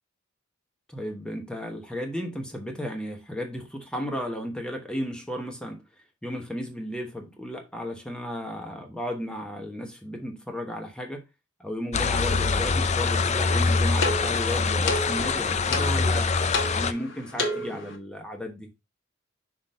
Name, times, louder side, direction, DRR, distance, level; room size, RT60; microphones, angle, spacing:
voice 1, 0.9-5.8 6.2-11.2 11.6-16.3 16.7-18.7, equal, 5° left, 1.0 m, -34 dB
sound 1, 11.9-16.9, left 4 dB, 35° left, 0.5 m, -24 dB
sound 2, 13.4-18.0, left 2 dB, 65° left, 1.6 m, -32 dB
5.9 x 3.8 x 5.4 m
head